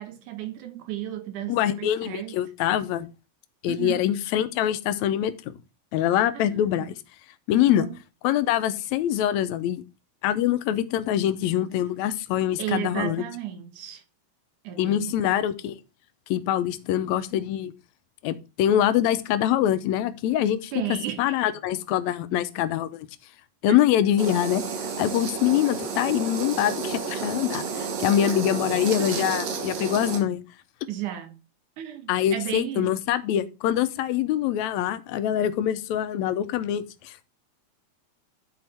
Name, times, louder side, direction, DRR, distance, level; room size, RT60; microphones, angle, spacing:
voice 1, 0.0-2.3 3.7-4.1 6.3-6.9 7.6-8.0 12.6-14.0 14.6-15.2 20.7-21.3 23.7-23.8 28.2-29.3 30.9-31.4 31.8-33.0, right 12 dB, 85° right, 2.6 m, -34 dB
voice 2, 1.5-3.1 3.6-5.3 5.9-7.0 7.5-7.9 8.2-9.8 10.2-13.2 14.8-15.7 16.3-17.7 18.2-23.1 23.6-30.4 32.1-37.2, left 11 dB, 75° left, 1.9 m, -24 dB
sound 1, 24.2-30.2, right 5 dB, 65° right, 2.3 m, -31 dB
10.5 x 4.4 x 4.2 m
omnidirectional pair, 3.4 m